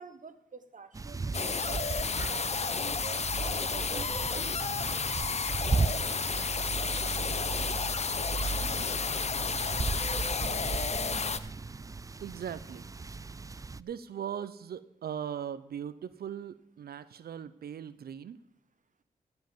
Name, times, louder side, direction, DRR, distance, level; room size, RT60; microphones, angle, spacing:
voice 1, 0.0-1.9 2.2-4.5, right 5 dB, 55° right, 10 dB, 1.3 m, -47 dB
sound 1, 0.9-13.8, right 3 dB, 20° right, 0.4 m, -36 dB
sound 2, 1.3-11.4, left 5 dB, 45° left, 0.8 m, -32 dB
voice 2, 12.2-12.9 13.8-18.4, right 9 dB, 75° right, 14 dB, 0.6 m, -39 dB
15.0 x 5.4 x 7.3 m, 0.80 s
cardioid pair, 55°, 16 cm